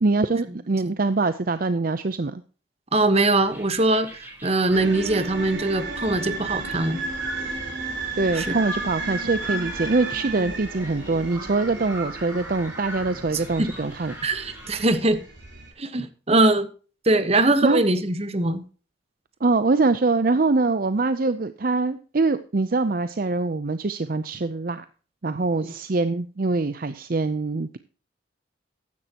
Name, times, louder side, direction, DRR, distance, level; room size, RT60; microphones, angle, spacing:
voice 1, 0.0-2.4 8.2-14.1 17.6-17.8 19.4-24.8 25.2-27.8, right 3 dB, 50° right, 12 dB, 0.6 m, -23 dB
voice 2, 2.9-7.0 8.3-8.6 13.3-13.7 14.2-15.2 15.8-16.7 17.0-18.6 25.6-25.7, right 2 dB, 35° right, 11 dB, 1.1 m, -22 dB
sound 1, 3.3-15.0, equal, 10° right, 6.4 m, -42 dB
sound 2, 4.7-15.7, right 3 dB, 70° right, 4.6 m, -33 dB
14.5 x 10.5 x 2.9 m, 0.37 s
head